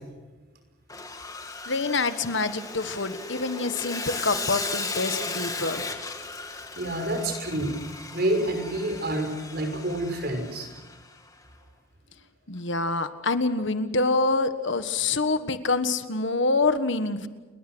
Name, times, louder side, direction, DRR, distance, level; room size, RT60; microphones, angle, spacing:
Sawing, 0.9-11.1, left 3 dB, 15° left, 1.9 m, -36 dB
voice 1, 1.7-5.9 12.5-17.3, left 3 dB, 60° left, 10 dB, 1.5 m, -26 dB
voice 2, 6.7-7.8 8.1-10.7, right 1 dB, 50° right, 6 dB, 5.7 m, -28 dB
30.0 x 22.0 x 6.3 m, 1.2 s
head